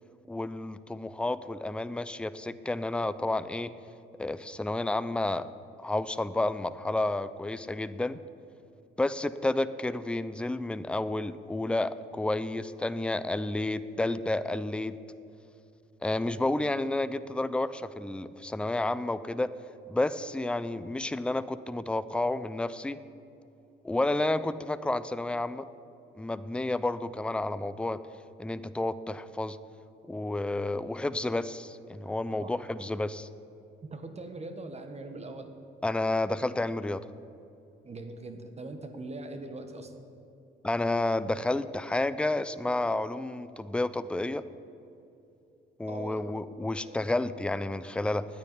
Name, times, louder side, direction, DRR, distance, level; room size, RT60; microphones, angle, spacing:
voice 1, 0.3-3.7 4.2-5.5 5.8-8.2 9.0-15.0 16.0-19.5 19.9-23.0 23.8-25.6 26.2-28.0 28.4-29.6 30.1-33.3 35.8-37.0 40.6-44.4 45.8-48.3, left 2 dB, 5° left, 14 dB, 0.5 m, -30 dB
voice 2, 33.9-35.5 37.8-40.0 45.9-46.3 46.7-47.0, right 2 dB, 35° right, 7 dB, 1.4 m, -41 dB
9.7 x 9.0 x 9.7 m, 2.7 s
cardioid pair, 90°, 20 cm